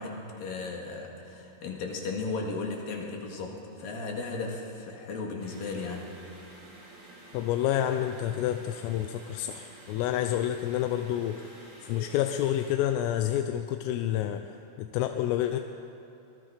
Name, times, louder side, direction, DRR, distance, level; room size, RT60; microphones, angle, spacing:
voice 1, 0.0-6.2, left 3 dB, 55° left, 0 dB, 3.1 m, -35 dB
sound 1, 5.4-12.7, right 1 dB, 65° right, 7.5 m, -51 dB
voice 2, 7.3-14.4 14.8-15.6, left 11 dB, 90° left, 6 dB, 3.3 m, -29 dB
25.0 x 21.0 x 5.0 m, 2.9 s
omnidirectional pair, 5.8 m